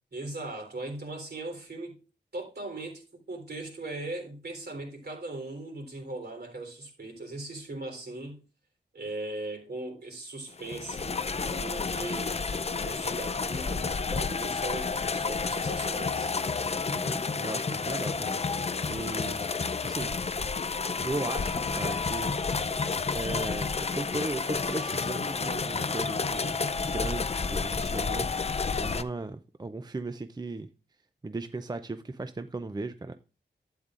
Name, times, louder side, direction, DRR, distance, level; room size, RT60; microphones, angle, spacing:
voice 1, 0.1-2.0 2.3-8.4 8.9-12.3 12.7-16.3, right 2 dB, 60° right, 3.7 m, -39 dB
sound 1, 10.6-29.0, left 4 dB, 35° left, 0.5 m, -30 dB
voice 2, 16.9-19.4 19.8-20.1 21.0-26.6 26.9-30.7 31.2-33.2, right 2 dB, 20° right, 0.5 m, -37 dB
12.0 x 8.9 x 2.5 m
wide cardioid pair, 120°, 19 cm